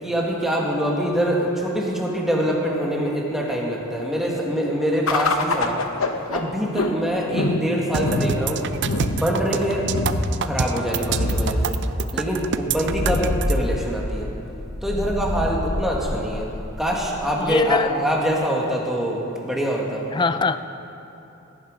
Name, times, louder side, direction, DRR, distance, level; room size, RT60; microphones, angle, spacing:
voice 1, 0.0-5.8 6.3-8.6 9.1-9.9 10.4-11.8 12.1-14.3 14.8-16.5 16.8-20.1, equal, ahead, -2 dB, 1.8 m, -24 dB
sound 1, 5.1-17.7, left 2 dB, 70° left, 0.9 m, -26 dB
sound 2, 7.9-13.5, right 7 dB, 55° right, 0.5 m, -27 dB
voice 2, 17.4-17.9 20.1-20.6, left 4 dB, 20° left, 12 dB, 0.4 m, -22 dB
16.5 x 10.5 x 5.1 m, 2.9 s
head